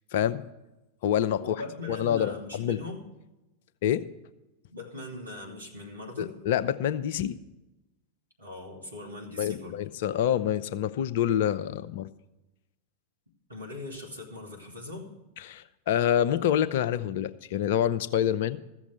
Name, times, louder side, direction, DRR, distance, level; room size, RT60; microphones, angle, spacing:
voice 1, 0.1-0.4 1.0-1.6 1.9-2.8 3.8-4.0 6.2-7.4 9.4-12.1 15.5-18.6, left 10 dB, 55° left, 14 dB, 0.6 m, -27 dB
voice 2, 1.4-3.0 4.7-6.4 8.4-9.8 13.5-15.1, left 2 dB, 80° right, -1 dB, 2.4 m, -40 dB
14.5 x 7.2 x 7.9 m, 1.0 s
figure-of-eight pair, 90°, 0 cm